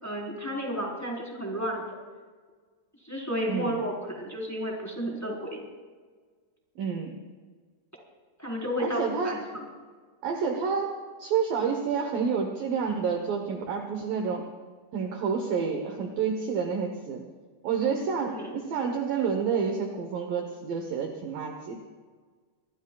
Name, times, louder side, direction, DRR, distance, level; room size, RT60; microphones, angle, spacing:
voice 1, 0.0-1.8 3.0-5.6 8.4-9.6 18.3-18.6, equal, 5° left, -3 dB, 3.6 m, -32 dB
voice 2, 6.8-7.1 8.8-9.4 10.2-10.9 11.2-14.5 14.9-17.2 17.6-21.8, right 6 dB, 65° right, 3 dB, 2.4 m, -29 dB
25.0 x 23.5 x 2.4 m, 1.5 s
omnidirectional pair, 5.1 m